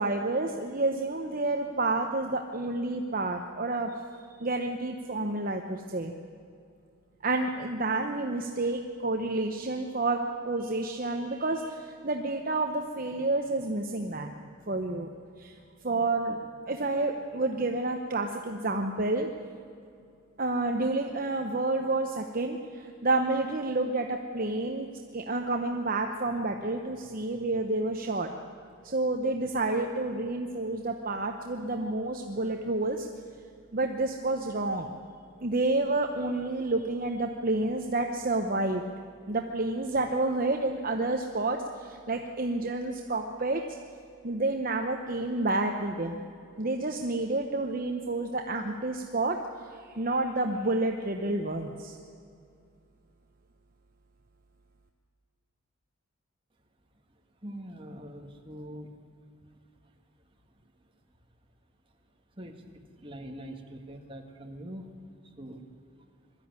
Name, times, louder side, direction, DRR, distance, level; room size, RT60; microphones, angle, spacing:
voice 1, 0.0-3.9 4.4-6.1 7.2-10.2 10.4-14.3 14.7-15.1 15.4-15.5 15.8-16.4 16.7-19.3 20.4-24.9 25.1-28.3 28.8-33.1 33.7-34.9 35.4-38.8 39.3-43.6 44.2-46.2 46.6-49.4 49.7-52.0, right 2 dB, 40° right, 3 dB, 1.0 m, -29 dB
voice 2, 57.4-58.9 62.4-62.6 63.0-64.9 65.4-65.7, right 1 dB, 25° right, 3 dB, 1.7 m, -43 dB
21.5 x 13.5 x 9.6 m, 2.4 s
head